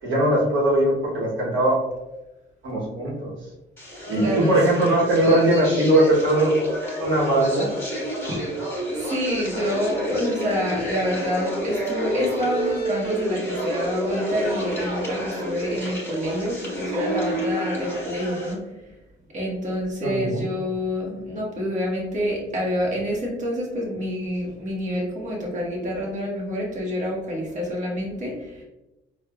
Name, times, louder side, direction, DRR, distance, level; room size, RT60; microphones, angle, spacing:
voice 1, 0.0-1.8 2.6-3.3 4.1-6.5 7.0-7.7 20.0-20.4, right 1 dB, 70° right, -5 dB, 1.0 m, -20 dB
sound 1, 3.8-18.5, right 1 dB, 10° left, 1.5 m, -29 dB
voice 2, 4.2-4.5 8.3-8.4 8.9-18.7 19.3-28.6, equal, 40° right, -3 dB, 1.1 m, -27 dB
4.3 x 2.2 x 2.3 m, 0.98 s
cardioid pair, 90°, 20 cm